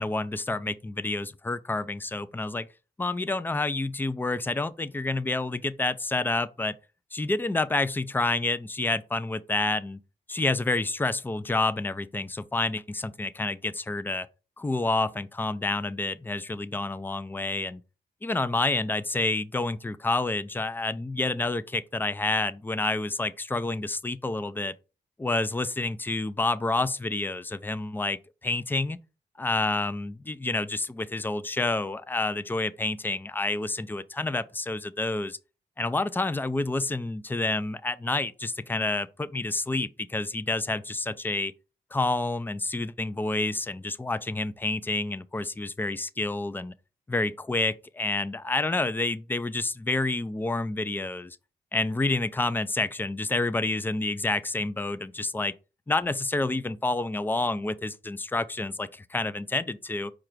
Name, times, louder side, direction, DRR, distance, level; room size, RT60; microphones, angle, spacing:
voice 1, 0.0-2.7 3.0-6.8 7.1-10.0 10.3-14.3 14.6-17.8 18.2-24.7 25.2-29.0 29.4-35.4 35.8-41.5 41.9-46.7 47.1-51.4 51.7-55.5 55.9-60.1, left 2 dB, 10° left, 0.4 m, -29 dB
4.7 x 2.4 x 4.6 m
cardioid pair, 50°, 18 cm